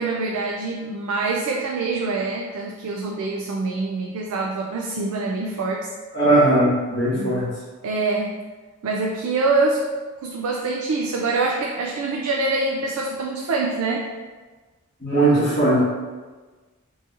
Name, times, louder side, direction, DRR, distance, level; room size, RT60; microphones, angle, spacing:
voice 1, 0.0-5.9 7.1-7.4 7.8-8.4 8.8-9.8 10.2-14.1, right 3 dB, 90° right, -1 dB, 0.4 m, -25 dB
voice 2, 6.1-7.4 15.0-15.8, right 2 dB, 45° left, -12 dB, 1.4 m, -18 dB
3.9 x 2.7 x 2.5 m, 1.3 s
head